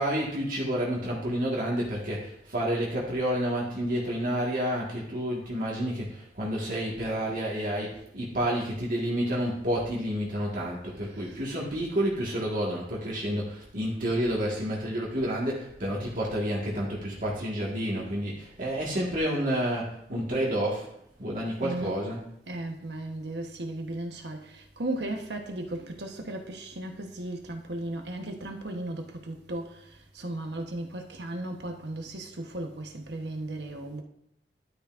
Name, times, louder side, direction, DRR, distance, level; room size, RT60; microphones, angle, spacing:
voice 1, 0.0-20.9 21.2-22.3, equal, 50° right, 1.7 m, -29 dB
voice 2, 11.0-11.4 21.6-22.0 22.5-34.0, right 1 dB, 75° right, 1.1 m, -36 dB
11.5 x 9.0 x 2.5 m
head